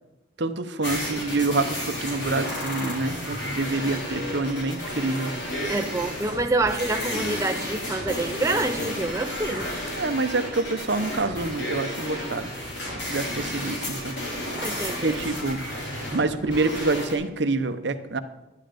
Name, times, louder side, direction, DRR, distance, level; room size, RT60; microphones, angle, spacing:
voice 1, 0.4-5.4 9.9-12.5 12.9-14.2 15.0-15.6 16.1-18.2, right 3 dB, 60° right, 10 dB, 0.8 m, -27 dB
sound 1, 0.8-17.1, left 1 dB, 60° left, 3.9 m, -32 dB
voice 2, 5.7-9.7 14.6-15.2, right 2 dB, 15° right, 5 dB, 0.4 m, -27 dB
12.5 x 10.5 x 5.1 m, 0.99 s
head